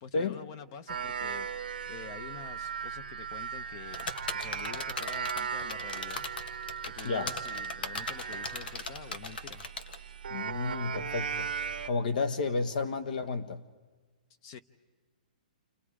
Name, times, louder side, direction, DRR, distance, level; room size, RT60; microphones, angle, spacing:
voice 1, 0.0-6.2 6.8-9.7 14.4-14.6, left 7 dB, 35° left, 0.9 m, -47 dB
sound 1, 0.9-11.9, right 7 dB, 90° right, 0.9 m, -37 dB
sound 2, 3.9-10.0, left 3 dB, 85° left, 1.5 m, -38 dB
voice 2, 10.3-11.5 11.8-13.6, left 4 dB, 65° left, 1.6 m, -31 dB
29.0 x 28.5 x 4.9 m
hypercardioid pair, 160°, 5 cm